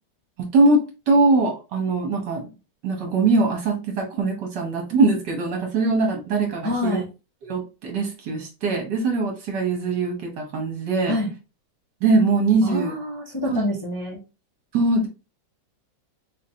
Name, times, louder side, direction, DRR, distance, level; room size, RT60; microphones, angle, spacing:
voice 1, 0.4-2.5 2.8-7.0 7.4-11.1 12.0-12.9 13.5-13.6 14.7-15.1, right 3 dB, 65° right, 2 dB, 1.6 m, -22 dB
voice 2, 6.6-7.1 11.1-11.3 12.6-14.2, left 1 dB, 15° left, -5 dB, 0.9 m, -26 dB
3.9 x 2.8 x 2.7 m, 0.29 s
omnidirectional pair, 2.1 m